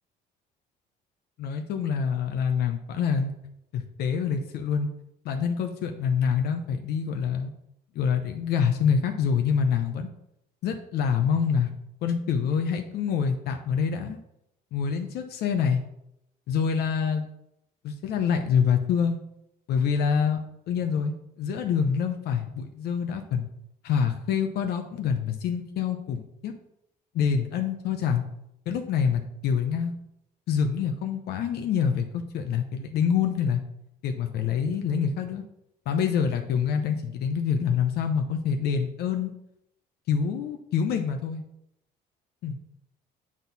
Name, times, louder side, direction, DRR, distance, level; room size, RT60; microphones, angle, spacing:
voice 1, 1.4-3.3 3.7-4.9 5.2-7.5 7.9-10.1 10.6-11.7 12.0-14.2 14.7-15.8 16.5-17.3 17.8-19.2 19.7-20.4 20.7-23.5 23.8-26.5 27.1-28.2 28.7-29.9 30.5-32.1 32.3-33.6 34.0-35.4 35.9-39.3 40.1-41.4 42.4-42.6, left 7 dB, 70° left, 5 dB, 0.8 m, -26 dB
8.8 x 4.2 x 4.1 m, 0.79 s
cardioid pair, 110°, 17 cm